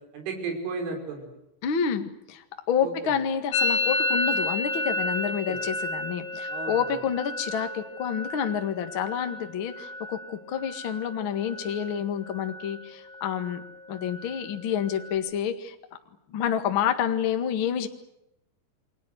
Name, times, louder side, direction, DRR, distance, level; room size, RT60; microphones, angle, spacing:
voice 1, 0.1-1.3 2.8-3.1 5.5-5.6 6.5-7.0, right 4 dB, 85° right, 4 dB, 7.6 m, -34 dB
voice 2, 1.6-13.6 13.9-15.7 16.3-17.9, left 8 dB, 65° left, 7 dB, 1.2 m, -28 dB
Musical instrument, 3.5-11.2 11.4-12.0 12.3-12.9 13.1-15.1, left 2 dB, 50° left, 3.4 m, -32 dB
29.0 x 22.5 x 8.1 m, 0.83 s
omnidirectional pair, 5.4 m